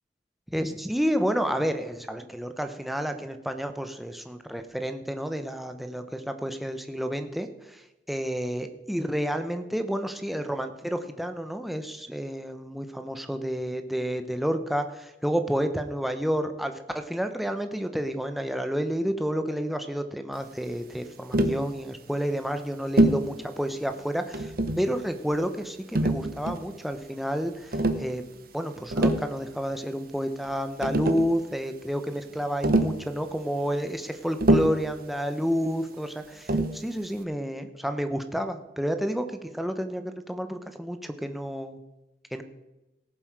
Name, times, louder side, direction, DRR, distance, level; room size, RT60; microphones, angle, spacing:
voice 1, 0.5-7.8 8.1-28.2 28.5-41.8 42.3-42.4, equal, ahead, 7 dB, 0.8 m, -30 dB
Tap, 21.3-21.6 23.0-23.3 24.3-24.9 25.9-26.7 27.7-28.1 28.8-29.3 30.5-30.6 30.8-31.3 32.6-33.0 34.4-34.9 36.5-36.8, right 1 dB, 55° right, 0.9 m, -24 dB
17.5 x 7.6 x 4.8 m, 1.0 s
head